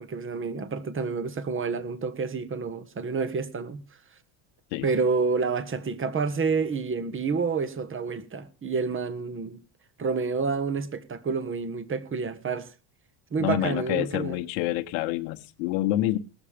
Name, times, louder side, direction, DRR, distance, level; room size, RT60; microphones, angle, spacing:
voice 1, 0.0-3.8 4.8-9.6 10.0-12.7 13.3-14.4, right 4 dB, 25° right, 1.4 m, -29 dB
voice 2, 13.4-16.2, left 14 dB, 90° left, 1.2 m, -27 dB
19.0 x 7.3 x 5.0 m
supercardioid pair, 110°, 50 cm